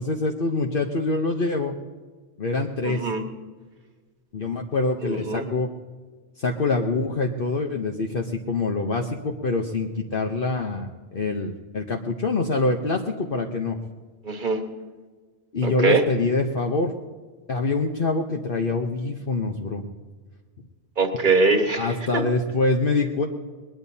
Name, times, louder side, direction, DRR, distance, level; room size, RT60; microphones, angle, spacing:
voice 1, 0.0-1.7 2.4-3.0 4.3-5.7 6.4-13.8 15.5-16.9 17.5-19.8 21.8-23.3, left 3 dB, 50° left, 2 dB, 1.1 m, -25 dB
voice 2, 2.8-3.3 5.0-5.5 14.2-14.6 15.6-16.0 21.0-22.2, right 4 dB, 45° right, 5 dB, 1.6 m, -23 dB
21.0 x 20.5 x 2.8 m, 1.4 s
omnidirectional pair, 1.2 m